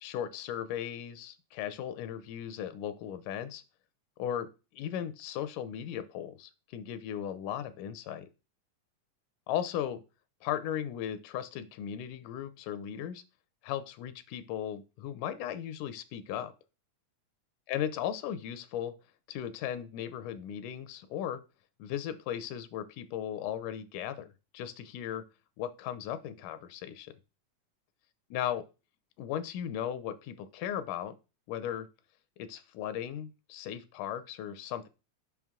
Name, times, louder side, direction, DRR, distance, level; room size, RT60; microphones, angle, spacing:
voice 1, 0.0-3.6 4.2-4.5 4.7-8.3 9.5-10.0 10.4-13.2 13.6-16.5 17.7-18.9 19.3-21.4 21.8-25.3 25.6-27.1 28.3-28.7 29.2-31.2 31.5-31.9 32.4-34.9, left 10 dB, 85° left, 13 dB, 2.2 m, -37 dB
6.0 x 5.6 x 3.6 m, 0.30 s
omnidirectional pair, 3.5 m